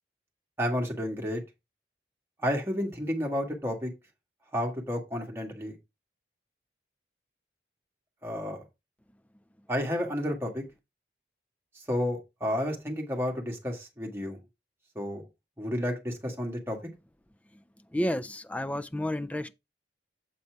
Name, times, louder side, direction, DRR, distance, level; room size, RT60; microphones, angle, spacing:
voice 1, 0.6-1.4 2.4-3.9 4.5-5.7 8.2-8.6 9.7-10.6 11.9-14.4 14.9-15.2 15.6-16.8, equal, 15° right, 1.6 m, -31 dB
voice 2, 17.9-19.5, left 1 dB, 10° left, 0.3 m, -31 dB
7.9 x 4.2 x 4.6 m
head